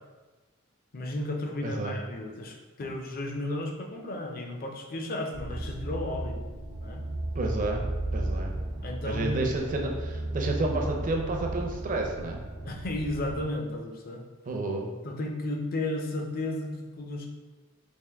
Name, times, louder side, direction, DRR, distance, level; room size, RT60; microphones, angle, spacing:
voice 1, 0.9-6.4 6.8-7.0 8.8-9.4 12.7-14.2 15.0-17.3, left 1 dB, 45° left, 2 dB, 0.5 m, -33 dB
voice 2, 1.6-2.0 7.3-7.9 8.1-8.5 9.0-12.4 14.5-14.9, right 2 dB, 40° right, 1 dB, 0.5 m, -30 dB
sound 1, 5.3-13.4, right 1 dB, 85° right, 0.6 m, -34 dB
3.5 x 2.4 x 3.4 m, 1.2 s
head